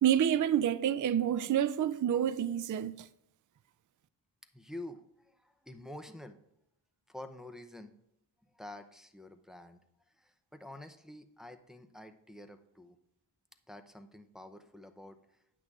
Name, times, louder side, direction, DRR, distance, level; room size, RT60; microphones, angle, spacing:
voice 1, 0.0-3.1, right 10 dB, 45° right, 0.4 m, -28 dB
voice 2, 4.5-6.4 7.1-8.0 8.4-9.8 10.1-13.0 13.7-15.4, left 1 dB, ahead, 0.7 m, -48 dB
9.5 x 8.5 x 3.6 m
wide cardioid pair, 95°, 46 cm